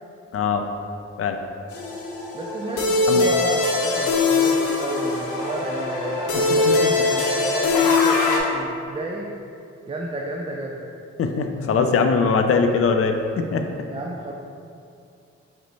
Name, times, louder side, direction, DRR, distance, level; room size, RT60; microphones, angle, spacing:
voice 1, 0.3-0.7 1.2-1.4 3.1-3.3 6.5-6.7 11.2-13.6, left 5 dB, 50° left, 5 dB, 0.5 m, -21 dB
sound 1, 1.7-8.4, left 3 dB, 80° left, 0.7 m, -21 dB
voice 2, 2.3-9.3 9.9-10.9 13.9-14.3, right 2 dB, 20° right, -1 dB, 0.4 m, -32 dB
5.0 x 2.2 x 4.1 m, 2.4 s
supercardioid pair, 50°, 29 cm